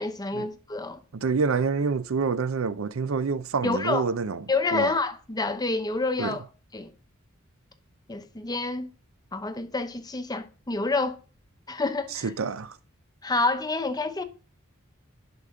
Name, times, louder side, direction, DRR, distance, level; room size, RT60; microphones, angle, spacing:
voice 1, 0.0-1.0 3.6-4.1 4.5-6.4 6.7-6.9 8.1-8.9 9.3-11.2 11.7-12.3 13.2-14.2, left 3 dB, 20° left, 0.8 m, -28 dB
voice 2, 1.1-4.4 4.7-5.0 6.2-6.3 12.1-12.8, right 5 dB, 70° right, 0.5 m, -27 dB
11.0 x 5.1 x 3.7 m
head